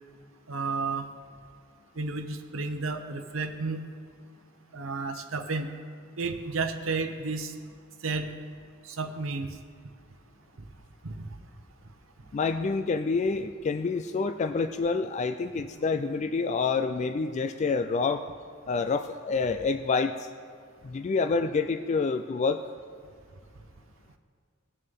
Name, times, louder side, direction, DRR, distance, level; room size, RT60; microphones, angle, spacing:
voice 1, 0.5-1.0 2.0-3.8 4.7-5.7 6.2-7.5 8.0-8.3 8.8-9.5 11.0-11.2, right 3 dB, 80° right, 5 dB, 0.8 m, -32 dB
voice 2, 12.3-18.2 18.7-20.3 20.8-22.6, left 4 dB, 35° left, 9 dB, 0.3 m, -27 dB
18.5 x 6.6 x 3.6 m, 2.2 s
head